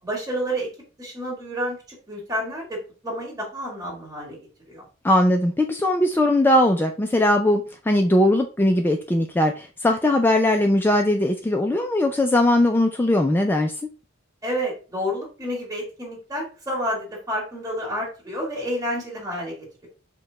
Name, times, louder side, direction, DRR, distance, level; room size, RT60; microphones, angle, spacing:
voice 1, 0.0-0.7 1.0-4.4 4.7-4.8 14.4-19.9, equal, 15° right, 1.8 m, -30 dB
voice 2, 5.0-13.7, left 1 dB, 10° left, 0.3 m, -20 dB
4.7 x 2.2 x 3.8 m
head